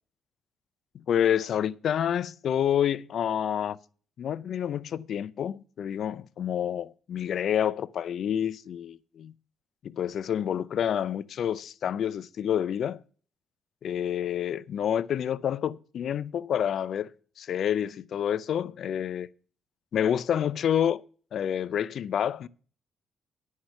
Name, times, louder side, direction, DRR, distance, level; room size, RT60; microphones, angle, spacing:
voice 1, 1.1-3.8 4.2-9.3 9.8-13.0 13.8-17.1 17.4-19.3 19.9-21.0 21.3-22.5, left 9 dB, 65° left, 0.5 m, -28 dB
9.6 x 6.5 x 5.6 m
cardioid pair, 90°, 0 cm